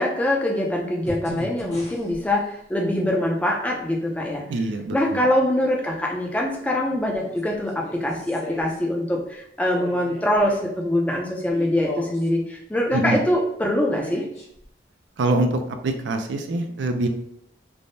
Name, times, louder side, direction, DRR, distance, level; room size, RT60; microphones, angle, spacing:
voice 1, 0.0-4.4 4.9-14.2, left 1 dB, 10° left, -1 dB, 0.4 m, -23 dB
sound 1, 1.1-2.3 4.1-4.2 7.1-8.8 9.7-10.6 11.4-12.3 13.8-14.6 15.2-15.3, equal, 35° left, 1.0 m, -38 dB
voice 2, 4.5-5.3 12.9-13.2 15.2-17.1, right 2 dB, 75° right, 6 dB, 0.4 m, -24 dB
3.3 x 2.1 x 2.6 m, 0.74 s
head